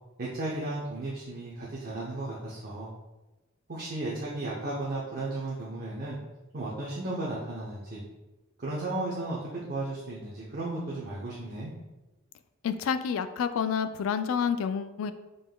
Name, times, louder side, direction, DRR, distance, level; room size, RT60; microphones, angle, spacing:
voice 1, 0.2-2.9 3.7-6.2 6.5-8.0 8.6-9.4 9.7-11.7, right 2 dB, 45° right, -5 dB, 0.7 m, -34 dB
voice 2, 12.6-15.1, left 7 dB, 70° left, 11 dB, 0.3 m, -29 dB
5.1 x 3.8 x 2.2 m, 1.1 s
head